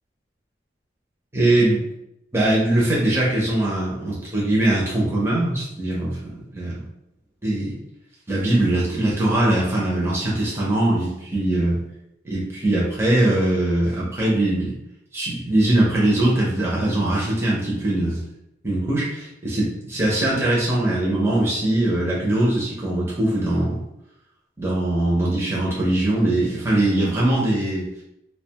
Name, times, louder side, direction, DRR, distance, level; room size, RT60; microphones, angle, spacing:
voice 1, 1.3-1.9 2.3-6.8 7.4-7.8 8.3-11.8 12.2-14.7 15.1-18.2 18.6-23.8 24.6-27.9, right 1 dB, 15° right, -6 dB, 0.5 m, -21 dB
2.4 x 2.1 x 2.8 m, 0.83 s
head